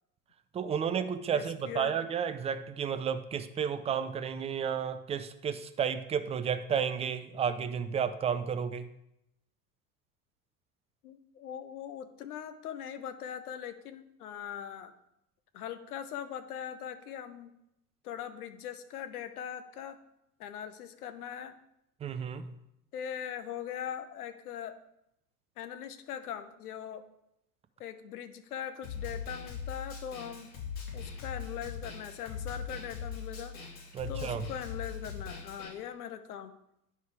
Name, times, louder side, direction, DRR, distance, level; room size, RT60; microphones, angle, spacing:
voice 1, 0.5-8.9 22.0-22.5 33.9-34.5, right 7 dB, 15° right, 11 dB, 0.4 m, -32 dB
voice 2, 1.3-2.0 11.0-14.9 15.5-17.5 18.0-20.0 20.4-21.6 22.9-24.8 25.6-27.0 27.8-30.5 30.9-33.6 34.1-36.5, left 9 dB, 70° left, 10 dB, 1.0 m, -41 dB
Snare drum, 28.8-35.7, left 6 dB, 45° left, 2.7 m, -40 dB
9.6 x 5.5 x 4.7 m, 0.81 s
figure-of-eight pair, 75°, 47 cm